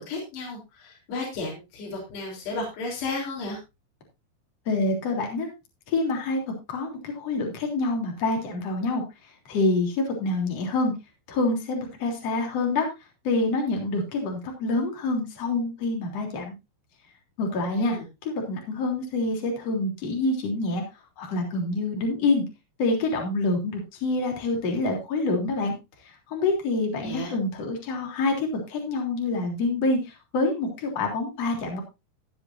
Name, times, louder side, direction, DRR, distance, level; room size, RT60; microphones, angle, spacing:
voice 1, 0.0-3.6 17.6-18.1 27.0-27.3, left 3 dB, 70° left, -2 dB, 5.7 m, -33 dB
voice 2, 4.7-5.5 5.9-6.4 6.7-9.0 9.5-10.9 11.3-12.9 13.2-16.5 17.4-20.8 21.2-22.4 22.8-25.7 26.3-31.8, left 2 dB, 40° left, 1 dB, 4.1 m, -26 dB
16.5 x 9.6 x 2.7 m, 0.25 s
omnidirectional pair, 5.1 m